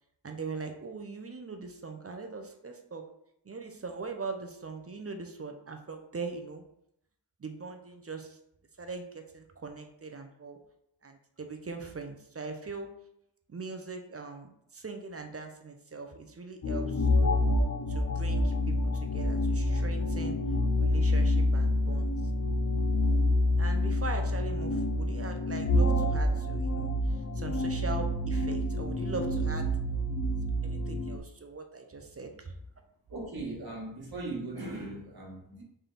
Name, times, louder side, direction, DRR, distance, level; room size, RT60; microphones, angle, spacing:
voice 1, 0.2-3.0 3.5-6.6 7.4-8.4 8.8-10.6 11.0-12.9 13.5-17.4 17.9-20.4 20.8-22.1 23.6-29.7 30.6-32.5, right 4 dB, 30° right, 5 dB, 0.6 m, -41 dB
sound 1, 16.6-31.2, left 1 dB, 40° left, 0.6 m, -27 dB
voice 2, 33.1-35.6, right 2 dB, 55° right, -3 dB, 1.5 m, -38 dB
3.5 x 2.7 x 3.8 m, 0.76 s
cardioid pair, 45°, 45 cm